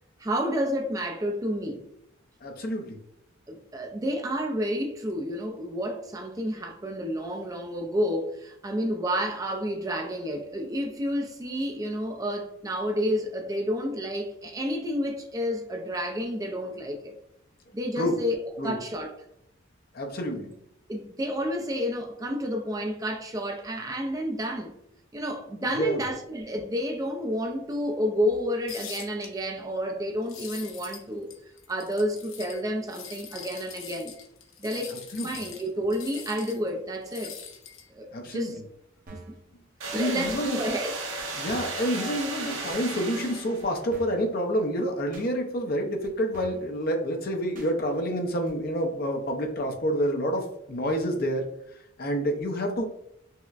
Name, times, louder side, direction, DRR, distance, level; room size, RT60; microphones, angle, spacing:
voice 1, 0.2-1.9 3.5-17.1 17.7-19.1 20.3-20.5 20.9-24.7 25.1-31.3 31.7-34.1 34.6-35.0 35.2-37.4 37.9-38.1 38.3-38.6 39.1-39.2 39.9-40.9, equal, 15° right, 0.4 m, -30 dB
voice 2, 2.4-3.0 18.0-18.1 18.6-18.8 19.9-20.5 25.6-26.0 34.9-35.4 38.1-38.5 39.9-40.6 41.3-52.8, equal, 50° left, 0.6 m, -28 dB
sound 1, 28.7-29.3 30.2-31.0 31.3-32.6 32.9-36.7 37.1-37.9, left 7 dB, 85° left, 0.7 m, -43 dB
sound 2, 39.1-39.4 40.3-40.4 41.2-41.3 41.5-41.8 42.7-42.9 43.6-43.7 43.9-44.3 45.1-45.3 46.0-46.1 46.3-46.7 47.5-47.7 48.5-48.6, right 3 dB, 40° right, 0.7 m, -46 dB
sound 3, 39.8-43.8, right 3 dB, 90° right, 0.9 m, -34 dB
5.5 x 2.1 x 2.4 m
head